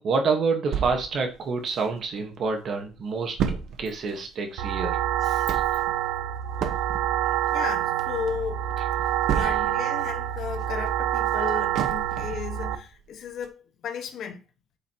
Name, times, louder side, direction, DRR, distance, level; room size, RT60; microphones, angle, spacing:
voice 1, 0.0-5.0 5.5-5.6 9.4-9.5, right 4 dB, 45° right, 1.3 m, -28 dB
sound 1, 0.7-2.3 2.6-2.7 2.9-9.9 10.3-12.5 12.9-13.0 13.4-13.5, right 7 dB, 60° right, 1.1 m, -32 dB
sound 2, 4.6-12.8, right 12 dB, 80° right, 0.8 m, -27 dB
voice 2, 5.2-5.5 7.3-8.7 9.3-13.5 13.8-14.4, left 6 dB, 50° left, 1.4 m, -34 dB
8.2 x 7.3 x 2.9 m
cardioid pair, 160°, 0 cm